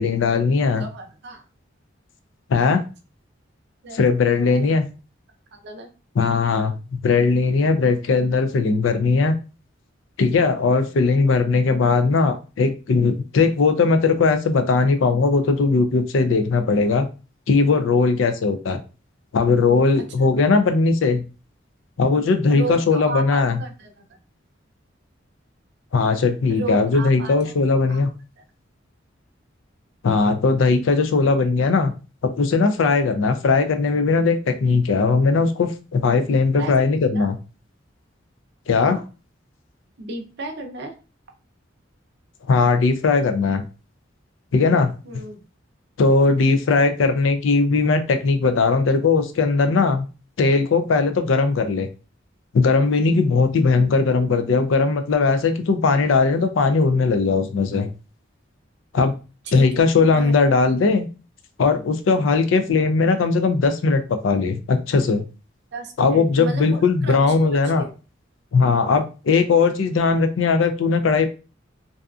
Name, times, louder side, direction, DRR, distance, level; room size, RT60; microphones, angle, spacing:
voice 1, 0.0-0.8 2.5-2.8 3.9-4.8 6.2-9.4 10.2-17.1 17.5-18.8 19.3-21.2 22.0-23.6 25.9-28.1 30.0-31.9 32.2-37.4 38.7-39.0 42.5-43.7 44.5-44.9 46.0-50.1 50.4-51.9 52.5-57.9 58.9-59.1 59.5-61.1 61.6-65.2 66.0-67.9 68.5-71.3, left 4 dB, 80° left, 8 dB, 0.4 m, -19 dB
voice 2, 0.8-1.4 3.8-4.0 4.4-4.7 5.5-5.9 20.0-20.4 22.5-23.9 26.5-28.0 36.3-36.9 37.1-37.3 38.8-39.0 40.0-40.9 45.0-45.4 59.4-60.5 65.7-67.9, right 3 dB, 60° right, 3 dB, 0.6 m, -34 dB
2.7 x 2.3 x 2.3 m, 0.33 s
head